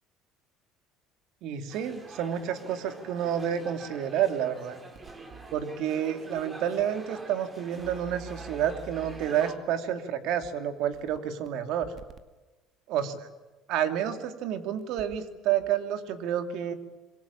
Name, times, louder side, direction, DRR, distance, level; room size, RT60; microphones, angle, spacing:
voice 1, 1.4-4.8 5.5-11.9 12.9-13.3 13.7-16.7, right 9 dB, 65° right, 8 dB, 2.9 m, -29 dB
sound 1, 1.7-9.6, right 2 dB, 20° right, 3.7 m, -46 dB
sound 2, 4.9-5.6 6.3-6.4 6.8-6.9 7.8-9.5 10.4-10.5 10.9-11.5 11.8-12.2 13.7-13.8 14.8-15.3 15.6-15.7, right 6 dB, 40° right, 2.0 m, -47 dB
25.5 x 22.5 x 8.7 m, 1.2 s
cardioid pair, 130°, 0 cm